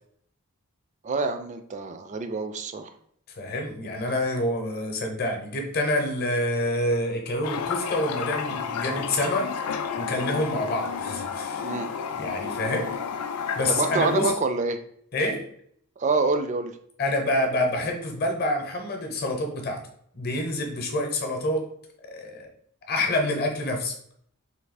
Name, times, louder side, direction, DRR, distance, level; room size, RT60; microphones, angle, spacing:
voice 1, 1.0-2.9 11.6-11.9 13.7-14.8 16.0-16.7, right 4 dB, 30° right, 7 dB, 0.3 m, -26 dB
voice 2, 3.4-9.5 10.0-11.7 12.1-12.9 13.6-14.3 15.1-15.5 17.0-19.8 20.1-21.7 22.0-22.5 22.9-23.9, left 1 dB, 45° left, 3 dB, 0.7 m, -27 dB
Toilet flush, 7.4-14.4, left 6 dB, 90° left, 0.4 m, -31 dB
3.3 x 2.7 x 4.0 m, 0.66 s
head